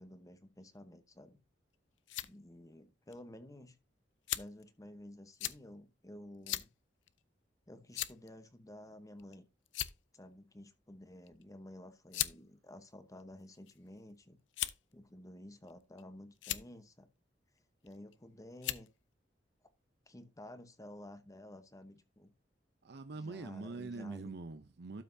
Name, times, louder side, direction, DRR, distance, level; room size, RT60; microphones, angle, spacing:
voice 1, 0.0-1.4 2.2-3.8 4.3-6.7 7.7-9.5 10.1-14.4 14.9-17.1 17.8-18.9 20.1-22.3 23.1-24.3, left 1 dB, 20° left, 0.9 m, -52 dB
sound 1, 1.7-2.3 3.1-3.2 4.3-4.6 5.4-5.6 6.5-6.7 7.1-7.2 7.9-8.3 9.2-9.3 9.7-10.1 11.3-11.4 12.1-12.4 13.2-13.8 14.5-14.9 15.7-16.0 16.3-16.6 17.9-18.1 18.6-18.9, left 14 dB, 90° left, 0.5 m, -38 dB
voice 2, 22.8-25.0, right 3 dB, 65° right, 0.6 m, -44 dB
12.0 x 5.8 x 2.7 m
head